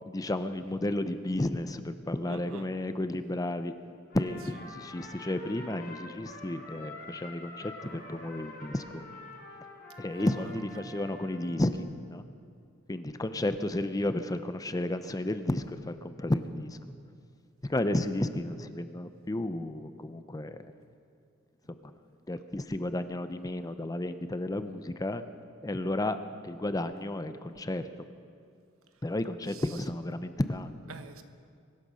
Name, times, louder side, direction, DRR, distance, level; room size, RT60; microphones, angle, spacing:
voice 1, 0.1-3.7 4.1-9.0 10.0-12.2 12.9-16.8 17.6-20.7 22.3-25.2 25.6-26.2 26.4-27.9 29.0-30.7, left 1 dB, 20° left, 10 dB, 0.6 m, -32 dB
voice 2, 2.2-2.7 10.1-10.4 29.5-29.8 30.9-31.2, right 4 dB, 90° right, 8 dB, 1.1 m, -46 dB
Trumpet, 4.1-11.7, left 2 dB, 50° left, 4.9 m, -47 dB
23.5 x 9.3 x 6.3 m, 2.3 s
head